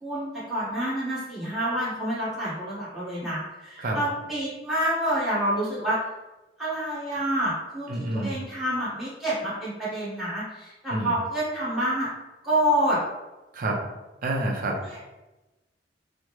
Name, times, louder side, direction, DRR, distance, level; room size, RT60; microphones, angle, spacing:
voice 1, 0.0-6.0 6.6-12.1 12.4-13.0 14.9-15.0, equal, ahead, -12 dB, 1.4 m, -28 dB
voice 2, 7.9-8.3 10.9-11.1 13.5-13.8 14.2-15.0, right 2 dB, 50° right, 0 dB, 0.6 m, -28 dB
3.5 x 2.0 x 3.1 m, 1.1 s
head